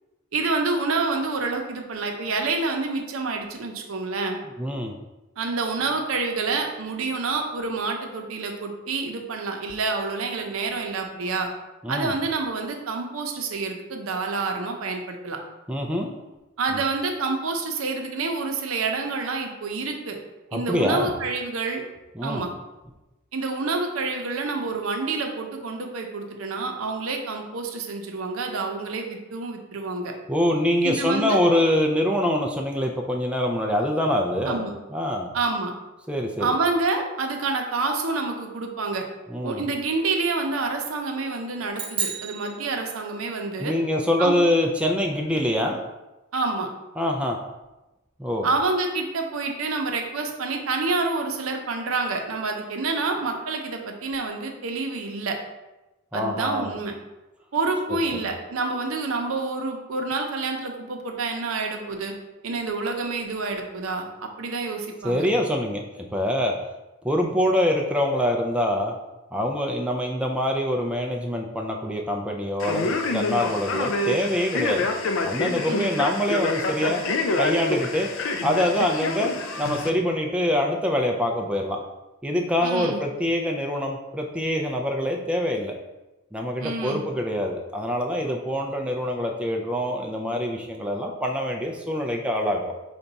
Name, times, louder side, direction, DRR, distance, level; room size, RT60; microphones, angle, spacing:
voice 1, 0.3-4.4 5.4-11.5 11.9-15.4 16.6-20.2 20.5-21.8 22.2-22.5 23.3-30.1 30.8-31.4 34.4-34.7 35.3-35.7 36.4-39.0 39.4-43.7 44.2-44.3 46.3-46.7 48.4-55.4 56.1-56.9 57.5-62.1 62.4-65.3 75.7-76.0 82.6-83.0 86.6-87.0, right 3 dB, 85° right, 3 dB, 0.6 m, -28 dB
voice 2, 4.6-4.9 11.8-12.1 15.7-16.1 20.5-21.1 22.2-22.4 30.3-34.6 34.9-35.3 36.1-36.6 39.3-39.6 43.6-45.8 47.0-47.4 48.2-48.5 56.1-56.7 65.0-65.8 66.1-66.6 67.0-69.0 69.3-74.9 75.2-77.0 77.4-78.1 78.4-79.3 79.6-81.8 82.2-85.7 86.3-92.7, left 1 dB, 5° right, 1 dB, 0.3 m, -24 dB
sound 1, 41.7-43.4, right 6 dB, 25° right, 0.8 m, -32 dB
Male speech man speaking, 72.6-79.9, left 3 dB, 70° left, 0.4 m, -27 dB
5.0 x 2.3 x 4.0 m, 1.0 s
head